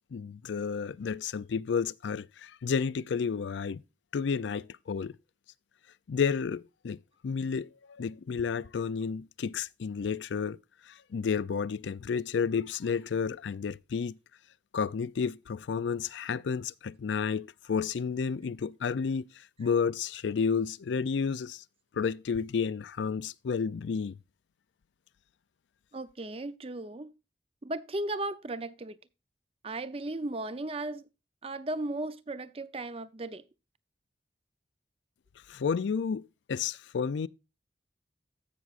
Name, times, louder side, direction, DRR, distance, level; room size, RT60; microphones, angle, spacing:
voice 1, 0.1-3.8 4.1-5.2 6.1-10.6 10.9-14.2 14.7-21.6 21.9-24.2 35.5-37.3, left 6 dB, 85° left, 0.4 m, -31 dB
voice 2, 25.9-27.1 27.6-29.0 29.6-31.0 31.4-33.4, right 2 dB, 35° right, 0.6 m, -36 dB
15.0 x 6.1 x 2.5 m
head